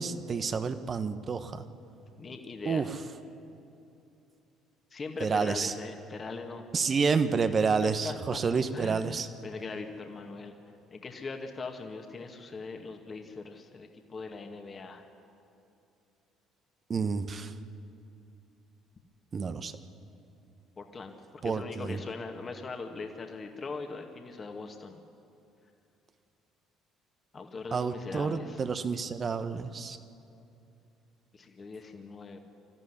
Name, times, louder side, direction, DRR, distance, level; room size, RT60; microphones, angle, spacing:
voice 1, 0.0-1.6 2.6-2.9 5.2-5.7 6.7-9.3 16.9-17.5 19.3-19.7 21.4-22.0 27.7-30.0, right 5 dB, 40° right, 10 dB, 1.3 m, -29 dB
voice 2, 2.2-2.8 4.9-6.6 7.3-8.4 8.7-10.5 10.9-15.0 20.8-25.0 27.3-28.6 31.3-32.4, left 4 dB, 35° left, 4 dB, 2.1 m, -41 dB
25.0 x 14.0 x 10.0 m, 2.8 s
hypercardioid pair, 55°, 0 cm